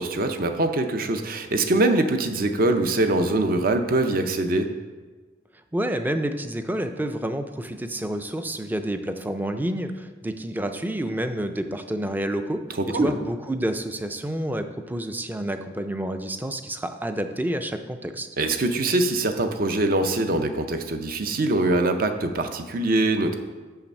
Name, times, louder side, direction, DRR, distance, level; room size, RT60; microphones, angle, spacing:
voice 1, 0.0-4.7 12.8-13.1 18.4-23.4, right 2 dB, 50° right, 7 dB, 0.6 m, -23 dB
voice 2, 5.7-18.3, right 1 dB, 10° right, 8 dB, 0.4 m, -29 dB
6.8 x 5.8 x 5.3 m, 1.3 s
head